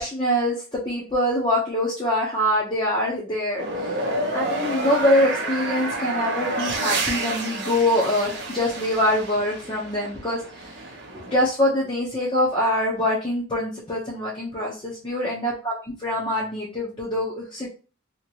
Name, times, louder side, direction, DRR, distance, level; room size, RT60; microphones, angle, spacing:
voice 1, 0.0-3.9 4.3-10.7 11.1-15.7 16.0-17.7, left 1 dB, 25° left, -4 dB, 0.8 m, -24 dB
sound 1, 3.6-11.4, right 2 dB, 55° right, 0.7 m, -29 dB
2.9 x 2.8 x 2.9 m, 0.35 s
head